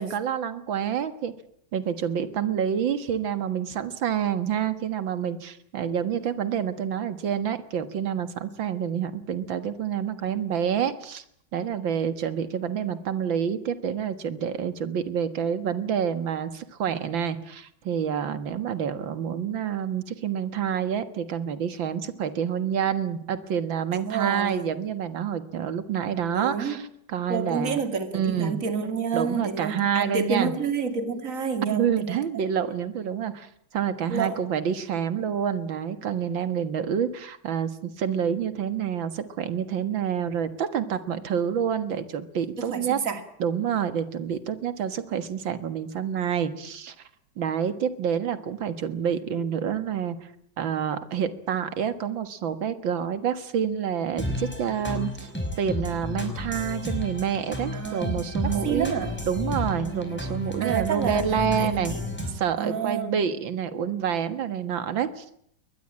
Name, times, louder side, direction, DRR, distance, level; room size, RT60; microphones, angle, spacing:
voice 1, 0.0-1.3 1.7-11.2 11.5-27.8 28.1-28.6 29.1-30.5 31.6-43.0 43.4-47.0 47.4-50.3 50.6-55.3 55.6-58.9 59.3-62.0 62.3-65.4, right 8 dB, 75° right, 11 dB, 2.3 m, -28 dB
voice 2, 23.9-24.7 26.3-26.8 27.3-32.2 34.1-34.4 42.6-43.2 57.7-59.2 60.6-62.3 62.6-63.3, right 5 dB, 40° right, 8 dB, 2.7 m, -29 dB
sound 1, 54.2-62.3, left 1 dB, 5° left, 5.4 m, -32 dB
22.5 x 20.0 x 8.7 m, 0.70 s
omnidirectional pair, 2.1 m